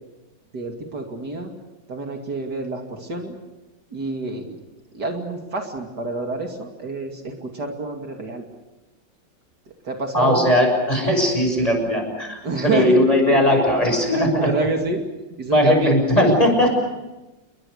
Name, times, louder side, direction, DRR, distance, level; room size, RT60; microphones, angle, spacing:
voice 1, 0.5-1.5 1.9-3.4 3.9-4.5 4.9-8.4 9.7-10.5 12.4-13.0 14.0-15.0 15.4-15.9, right 2 dB, 60° right, 3 dB, 3.1 m, -27 dB
voice 2, 10.1-14.1 15.5-16.7, left 1 dB, 20° left, 3 dB, 6.7 m, -18 dB
30.0 x 22.0 x 6.6 m, 1.0 s
omnidirectional pair, 2.0 m